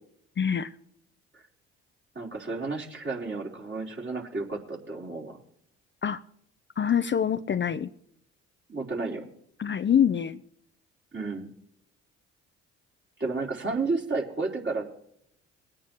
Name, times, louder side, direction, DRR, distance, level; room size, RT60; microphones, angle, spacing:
voice 1, 0.4-0.7 6.0-6.2 6.8-7.9 9.6-10.4, left 8 dB, 35° left, 0.6 m, -25 dB
voice 2, 2.2-5.4 8.7-9.3 11.1-11.5 13.2-14.9, right 3 dB, 35° right, 3.8 m, -32 dB
21.5 x 9.0 x 3.0 m
hypercardioid pair, 50°, 34 cm